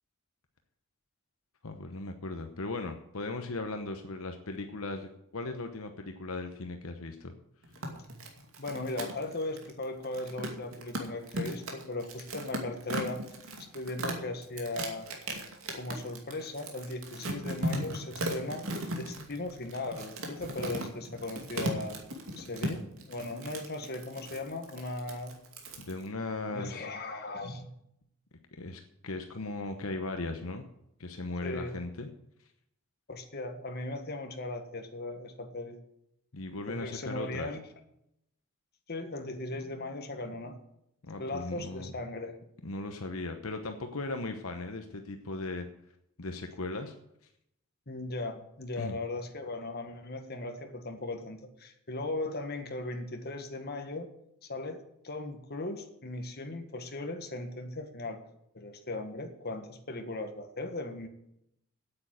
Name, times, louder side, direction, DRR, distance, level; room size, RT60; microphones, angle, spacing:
voice 1, 1.6-7.3 25.8-26.9 28.6-30.7 31.0-32.1 36.3-37.5 41.0-41.9 42.6-45.7 46.2-46.9 48.8-48.9, left 2 dB, 70° left, 6 dB, 1.0 m, -37 dB
sound 1, 7.6-26.0, right 1 dB, 70° right, 2.5 m, -37 dB
voice 2, 8.6-13.3 13.6-15.1 15.7-18.7 19.0-22.0 22.4-25.4 26.5-27.7 31.4-31.8 33.1-35.8 36.7-37.7 38.9-40.6 41.2-42.4 47.9-54.1 54.5-58.2 58.5-61.1, left 2 dB, 45° left, 5 dB, 1.6 m, -38 dB
9.0 x 8.6 x 8.9 m, 0.78 s
head